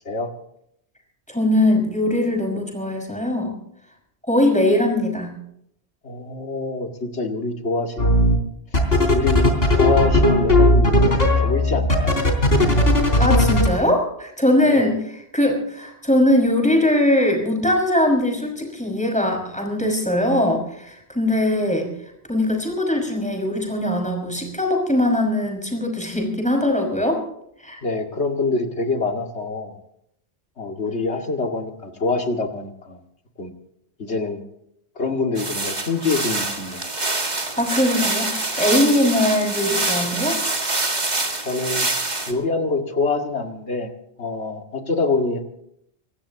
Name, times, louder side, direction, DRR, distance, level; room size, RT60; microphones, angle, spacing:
voice 1, 1.3-3.5 4.3-5.3 13.2-21.9 22.3-27.2 27.6-27.8 37.6-40.4, left 1 dB, 5° left, 2 dB, 5.7 m, -21 dB
voice 2, 6.0-8.0 9.1-12.4 14.6-14.9 27.8-29.8 30.6-33.0 33.4-33.5 34.0-34.4 35.0-36.9 41.4-41.9 42.3-43.9 44.2-45.4, left 3 dB, 75° left, 4 dB, 2.5 m, -25 dB
sound 1, 8.0-8.4 8.7-13.7, left 1 dB, 60° left, 3.8 m, -16 dB
sound 2, 35.4-42.3, right 2 dB, 40° right, 2.3 m, -25 dB
25.0 x 19.0 x 3.0 m, 0.74 s
omnidirectional pair, 1.1 m